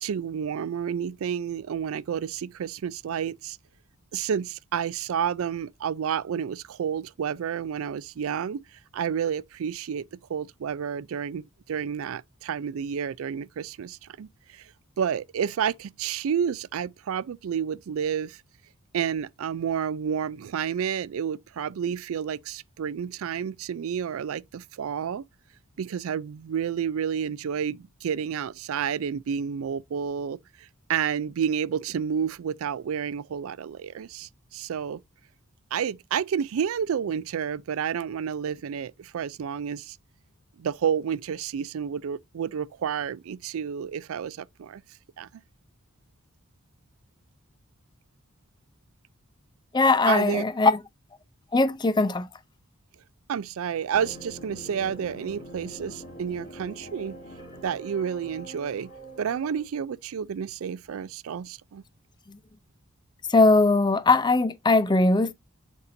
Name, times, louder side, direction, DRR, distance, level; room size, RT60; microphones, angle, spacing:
voice 1, 0.0-3.6 4.1-8.6 8.9-14.7 15.0-18.4 18.9-25.2 25.8-30.4 30.9-35.0 35.7-40.0 40.6-44.8 45.2-45.3 50.1-50.4 53.3-57.2 57.6-58.9 59.2-61.8, right 7 dB, 75° right, 0.4 m, -30 dB
voice 2, 49.7-50.8 51.5-52.3 62.3-62.4 63.3-65.3, left 3 dB, 20° left, 0.5 m, -20 dB
sound 1, 53.9-59.7, right 1 dB, 40° left, 3.4 m, -44 dB
10.5 x 4.2 x 2.5 m
head